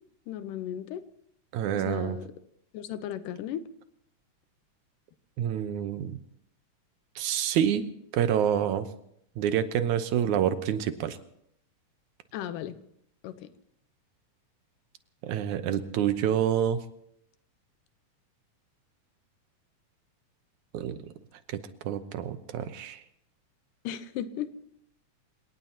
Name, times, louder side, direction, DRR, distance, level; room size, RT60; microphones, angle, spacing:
voice 1, 0.3-1.0 1.7-2.3 2.7-3.6 12.3-12.8 13.2-13.5 23.8-24.5, left 10 dB, 85° left, 12 dB, 2.5 m, -35 dB
voice 2, 1.5-2.2 5.4-6.2 7.2-7.9 8.1-8.9 9.4-11.2 15.2-16.8 20.7-21.0 21.5-21.6 21.8-23.0, right 9 dB, 75° right, 10 dB, 2.3 m, -27 dB
28.0 x 18.0 x 2.9 m, 0.72 s
omnidirectional pair, 3.7 m